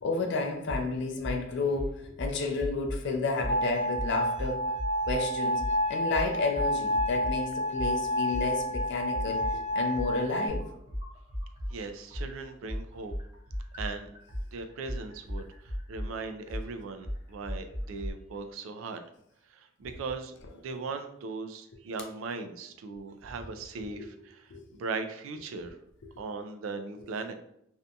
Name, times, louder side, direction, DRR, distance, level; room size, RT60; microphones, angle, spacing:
voice 1, 0.0-4.7 5.1-5.6 5.9-10.6 23.8-24.0 24.5-24.6, left 3 dB, 60° left, 0.4 m, -31 dB
sound 1, 0.7-0.8 1.2-1.4 1.7-3.0 3.4-3.6 3.9-5.2 5.6-5.7 6.1-7.4 7.7-11.7 12.1-18.1, equal, 25° right, 0.6 m, -36 dB
sound 2, 3.5-10.5, equal, 30° left, 0.7 m, -30 dB
voice 2, 11.7-13.1 13.8-14.1 14.5-19.0 19.5-25.8 26.2-27.3, right 4 dB, 75° right, 0.3 m, -39 dB
2.6 x 2.2 x 2.6 m
head